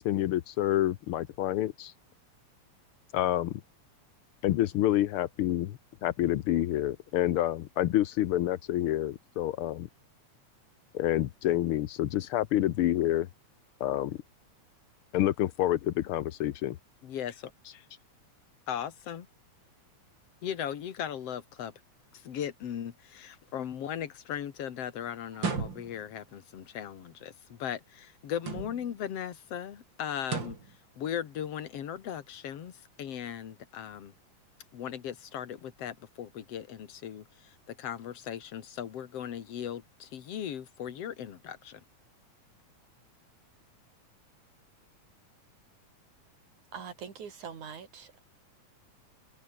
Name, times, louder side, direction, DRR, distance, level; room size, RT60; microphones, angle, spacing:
voice 1, 0.0-1.9 3.1-3.6 4.4-9.9 10.9-13.3 13.8-14.2 15.1-16.8, left 13 dB, 85° left, 1.2 m, -28 dB
voice 2, 17.0-17.7 18.7-19.3 20.4-21.7 22.1-30.6 31.0-34.1 34.7-41.8, left 9 dB, 55° left, 2.6 m, -38 dB
sound 1, 25.3-26.2 28.3-29.0 30.2-30.8, right 4 dB, 35° right, 3.6 m, -35 dB
voice 3, 46.7-48.2, right 7 dB, 70° right, 4.6 m, -43 dB
omnidirectional pair, 3.5 m